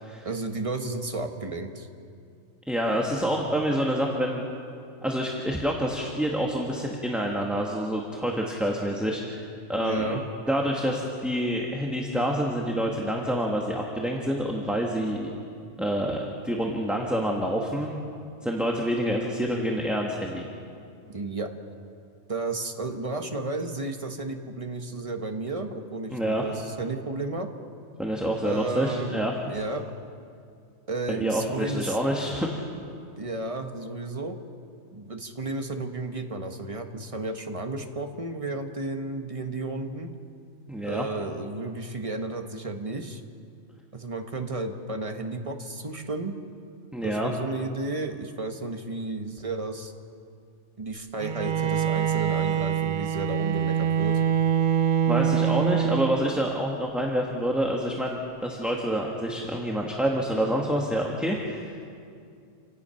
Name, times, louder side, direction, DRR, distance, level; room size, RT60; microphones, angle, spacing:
voice 1, 0.2-1.9 9.8-10.2 21.1-21.5 22.3-27.5 28.4-29.8 30.9-32.0 33.2-34.4 34.9-40.1 40.8-43.2 43.9-46.4 47.0-49.9 50.8-54.2, right 2 dB, 25° right, 5 dB, 1.4 m, -33 dB
voice 2, 2.7-4.4 5.0-9.4 9.7-10.2 10.5-15.3 15.8-16.2 16.4-17.9 18.4-20.4 26.1-26.4 28.0-29.3 31.1-32.6 40.7-41.0 46.9-47.3 55.1-61.7, equal, ahead, -1 dB, 1.6 m, -27 dB
Bowed string instrument, 51.2-56.6, right 8 dB, 50° right, 0.6 m, -25 dB
29.0 x 17.0 x 5.8 m, 2.4 s
omnidirectional pair, 1.3 m